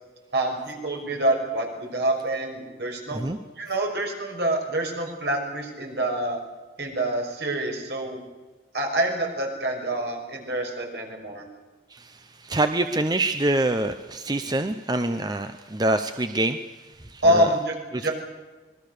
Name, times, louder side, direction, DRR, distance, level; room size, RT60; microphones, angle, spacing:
voice 1, 0.3-3.2 3.6-6.4 6.8-8.2 8.7-11.5 17.2-18.1, right 1 dB, 70° right, 2 dB, 5.9 m, -26 dB
voice 2, 11.9-16.6 17.1-17.5 17.9-18.1, right 2 dB, 25° right, 8 dB, 0.8 m, -26 dB
26.0 x 21.0 x 6.7 m, 1.3 s
head